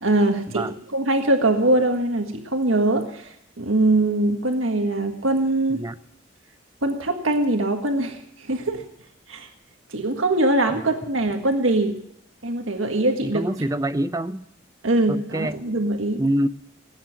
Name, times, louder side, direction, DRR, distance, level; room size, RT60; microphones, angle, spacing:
voice 1, 0.0-3.3 3.6-5.8 6.8-8.2 8.5-8.8 9.3-9.5 9.9-11.9 12.4-13.4 14.8-16.2, right 2 dB, 85° right, 5 dB, 1.7 m, -22 dB
voice 2, 13.2-14.4 15.1-15.6 16.2-16.5, right 1 dB, 15° right, 13 dB, 0.5 m, -25 dB
18.5 x 9.6 x 6.4 m, 0.76 s
head